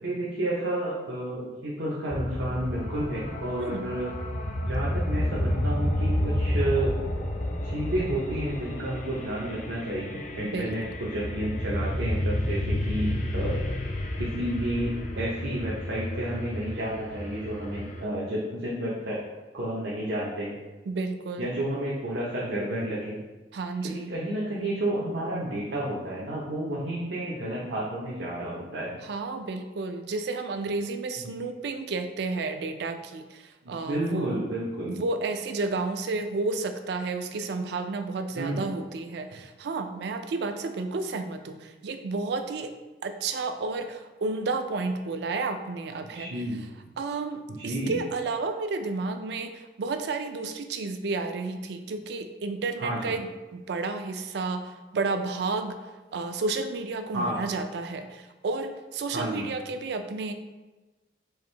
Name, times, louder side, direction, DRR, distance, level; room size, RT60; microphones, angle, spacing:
voice 1, 0.0-4.1 4.6-6.9 7.6-13.6 14.2-19.2 19.5-20.6 21.4-23.2 23.8-28.9 31.2-31.3 33.6-35.0 38.4-38.6 46.1-46.6 46.8-46.9 47.6-48.0 52.8-53.0 57.1-57.4 59.1-59.4, right 1 dB, 85° right, -6 dB, 0.7 m, -31 dB
sound 1, 2.1-18.0, left 1 dB, 45° left, 0.5 m, -30 dB
voice 2, 10.4-10.7 20.9-21.5 23.5-24.1 29.0-34.4 34.9-42.7 43.0-46.3 47.0-55.8 56.1-60.3, right 3 dB, 65° right, 7 dB, 0.4 m, -31 dB
4.7 x 2.6 x 3.2 m, 1.2 s
head